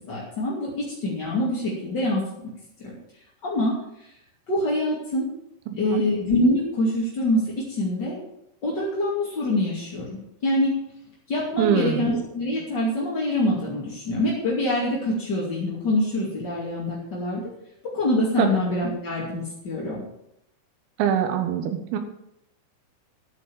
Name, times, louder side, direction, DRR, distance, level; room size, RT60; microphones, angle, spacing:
voice 1, 0.1-2.2 2.8-2.9 3.4-3.7 4.5-5.3 5.8-8.2 8.6-10.7 11.3-17.4 17.9-20.0, left 1 dB, 35° left, -5 dB, 1.7 m, -25 dB
voice 2, 5.7-6.0 11.6-12.1 18.4-18.6 21.0-22.0, right 8 dB, 85° right, 7 dB, 4.0 m, -24 dB
11.5 x 9.4 x 7.1 m, 0.79 s
omnidirectional pair, 6.0 m